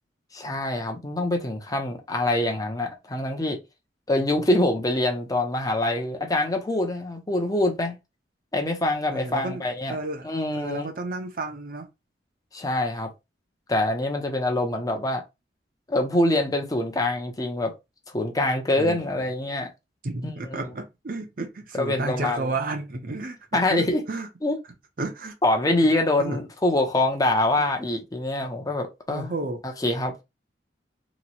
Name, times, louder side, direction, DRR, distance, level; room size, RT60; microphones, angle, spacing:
voice 1, 0.3-3.6 4.1-7.9 8.5-10.0 10.2-10.9 12.5-13.1 13.7-15.2 15.9-17.7 18.1-19.7 20.5-20.7 21.8-22.5 23.5-24.0 24.4-24.6 25.4-29.3 29.8-30.1, left 1 dB, 20° left, 0.6 m, -25 dB
voice 2, 9.1-9.6 9.9-11.9 18.8-19.3 20.0-23.4 23.7-24.3 25.0-25.3 26.2-26.4 27.6-27.7 29.1-29.6, right 2 dB, 50° right, 0.6 m, -32 dB
3.0 x 2.1 x 4.0 m
head